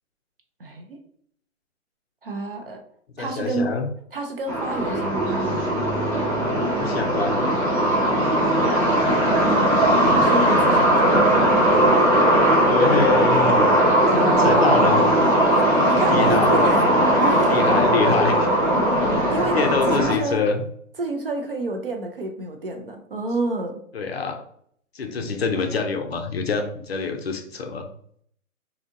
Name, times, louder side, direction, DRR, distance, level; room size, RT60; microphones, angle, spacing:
voice 1, 0.6-1.0 2.2-2.8 3.2-3.8 4.1-5.7 9.5-11.4 14.1-15.4 15.9-16.9 17.2-17.7 19.3-20.4 21.0-23.8, right 2 dB, 45° right, 4 dB, 0.5 m, -28 dB
voice 2, 3.2-3.9 6.8-7.4 12.7-14.1 14.4-15.0 16.1-16.5 17.3-18.5 19.5-20.6 23.9-24.4 24.9-27.9, left 4 dB, 50° left, 5 dB, 0.5 m, -25 dB
sound 1, 4.5-20.2, right 1 dB, 25° right, 0.9 m, -19 dB
4.0 x 2.7 x 2.5 m, 0.64 s
hypercardioid pair, 160°, 42 cm